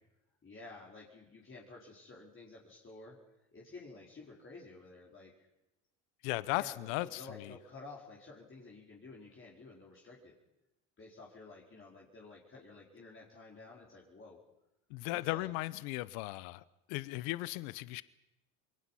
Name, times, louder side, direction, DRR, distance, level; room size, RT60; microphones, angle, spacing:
voice 1, 0.4-3.2 3.5-5.5 6.5-10.3 11.0-14.4 15.1-15.6, left 3 dB, 30° left, -4 dB, 4.7 m, -52 dB
voice 2, 6.2-7.2 14.9-18.0, left 19 dB, 85° left, 18 dB, 0.8 m, -36 dB
28.0 x 22.0 x 5.7 m, 0.92 s
supercardioid pair, 90°, 40 cm